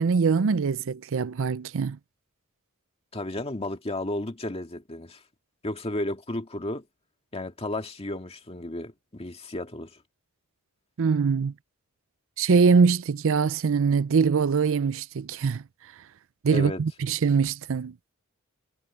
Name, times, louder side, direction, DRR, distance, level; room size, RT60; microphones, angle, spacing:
voice 1, 0.0-2.0 11.0-11.5 12.4-15.6 16.4-17.9, right 5 dB, 65° right, 0.5 m, -23 dB
voice 2, 3.1-5.2 5.6-6.9 7.3-10.0 16.5-16.8, left 1 dB, 25° left, 2.1 m, -33 dB
head